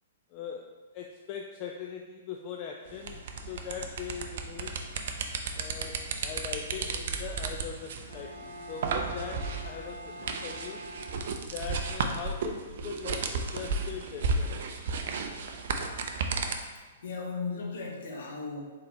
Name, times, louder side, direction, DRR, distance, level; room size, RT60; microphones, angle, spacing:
voice 1, 0.3-0.7 0.9-4.8 5.5-10.8 11.5-14.6, left 7 dB, 35° left, 2 dB, 0.3 m, -41 dB
sound 1, 2.9-16.6, right 4 dB, 55° right, 0.4 m, -34 dB
Bowed string instrument, 8.0-11.8, equal, 75° left, 1.4 m, -45 dB
voice 2, 16.6-18.6, left 4 dB, 60° left, -1 dB, 1.0 m, -37 dB
4.1 x 3.9 x 3.1 m, 1.3 s
figure-of-eight pair, 110°, 0 cm